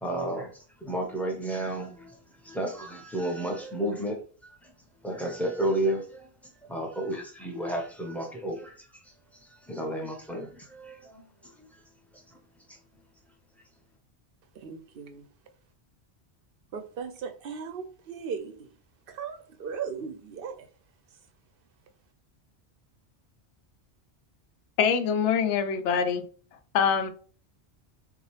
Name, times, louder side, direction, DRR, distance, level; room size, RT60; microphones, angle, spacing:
voice 1, 0.0-4.2 4.4-4.7 5.0-6.3 6.6-11.2 11.5-11.8 12.1-12.4 12.7-12.8, right 1 dB, ahead, 0.7 m, -32 dB
voice 2, 14.5-15.3 16.7-18.7 19.1-20.7, right 6 dB, 60° right, 0.7 m, -37 dB
voice 3, 24.8-26.2 26.7-27.1, left 7 dB, 80° left, 0.9 m, -24 dB
5.7 x 2.4 x 3.2 m
omnidirectional pair, 1.2 m